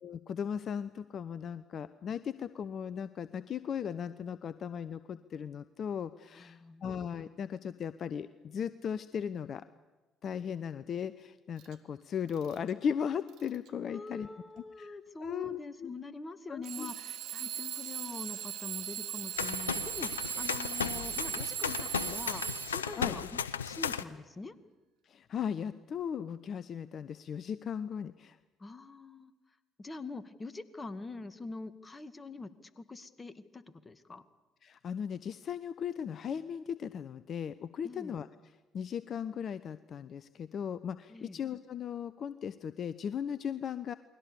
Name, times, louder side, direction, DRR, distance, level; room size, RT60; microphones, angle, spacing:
voice 1, 0.0-9.6 10.2-14.3 14.8-15.9 16.5-16.9 23.0-23.1 25.0-28.4 34.6-38.3 38.7-43.9, left 7 dB, 50° left, 14 dB, 0.9 m, -37 dB
voice 2, 6.3-6.8 13.9-24.6 28.6-29.3 29.8-34.2 37.8-38.2 41.1-41.4, left 3 dB, 25° left, 12 dB, 2.1 m, -44 dB
Alarm / Clock, 11.6-11.7 12.3-12.7 13.3-13.7 14.6-14.7 16.6-23.0, right 12 dB, 65° right, 1.8 m, -38 dB
sound 1, 19.4-24.0, left 7 dB, 90° left, 0.8 m, -35 dB
29.0 x 22.0 x 7.0 m, 1.2 s
hypercardioid pair, 50°, 0 cm